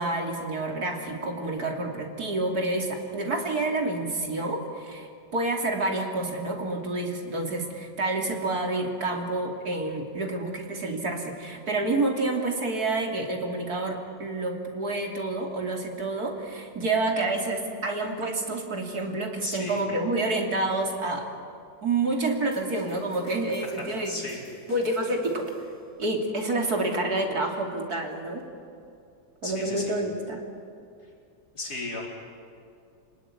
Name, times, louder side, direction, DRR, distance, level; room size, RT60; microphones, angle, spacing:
voice 1, 0.0-21.3 21.8-24.2 24.7-25.5 26.0-28.4 29.4-30.4, right 2 dB, 65° right, 2 dB, 3.4 m, -28 dB
voice 2, 19.4-19.8 23.8-24.4 29.4-30.0 31.5-32.1, left 2 dB, 65° left, -2 dB, 5.2 m, -35 dB
sound 1, 22.5-25.9, left 1 dB, 50° left, 4.4 m, -50 dB
29.0 x 19.0 x 9.8 m, 2.4 s
omnidirectional pair, 1.8 m